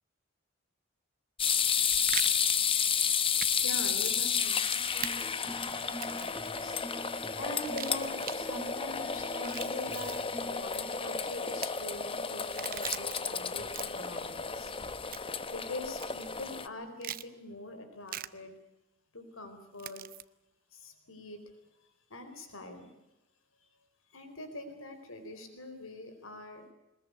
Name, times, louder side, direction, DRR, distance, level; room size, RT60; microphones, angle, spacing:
sound 1, 1.4-16.7, left 6 dB, 25° left, 1.0 m, -32 dB
sound 2, 1.5-2.3 3.4-3.6 3.8-3.9 5.0-5.1 5.9-6.3 7.5-8.4 9.3-10.2 11.4-11.7 12.4-13.2 13.6-14.1 15.1-15.4 16.0-16.1 17.0-17.3 18.1-18.3 19.8-20.2, right 11 dB, 45° right, 0.8 m, -40 dB
voice 1, 3.3-6.9 7.4-14.7 15.5-18.5 19.1-20.0 20.7-21.4 22.1-22.9 24.1-26.7, left 2 dB, 80° left, 7 dB, 4.4 m, -44 dB
sound 3, 4.9-11.2, equal, 10° left, 1.7 m, -45 dB
22.0 x 20.5 x 8.4 m, 0.95 s
head